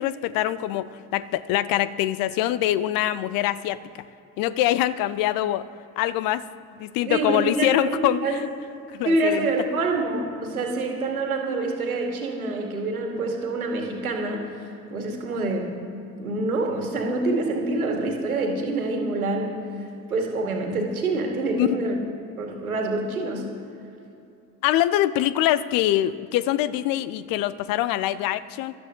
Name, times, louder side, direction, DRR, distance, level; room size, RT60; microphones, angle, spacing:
voice 1, 0.0-3.8 4.4-5.7 6.0-6.4 6.8-8.5 8.9-9.5 21.6-21.9 23.8-23.9 24.6-28.7, left 13 dB, 50° left, 16 dB, 0.7 m, -24 dB
voice 2, 7.0-8.4 9.0-15.7 16.2-22.0 22.4-23.5, right 2 dB, 80° right, 2 dB, 2.1 m, -26 dB
18.0 x 13.0 x 3.8 m, 2.7 s
figure-of-eight pair, 60°, 43 cm